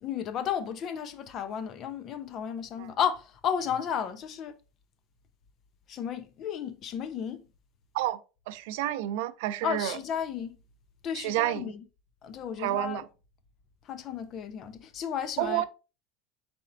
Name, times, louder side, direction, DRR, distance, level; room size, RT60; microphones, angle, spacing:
voice 1, 0.0-4.5 5.9-7.4 9.6-10.5 11.0-11.8 12.2-13.0 13.9-15.6, left 8 dB, 35° left, 0.4 m, -33 dB
voice 2, 8.5-10.0 11.1-11.7 12.6-13.1 15.4-15.6, right 14 dB, 75° right, 0.4 m, -29 dB
4.1 x 4.1 x 2.6 m
cardioid pair, 160°, 0 cm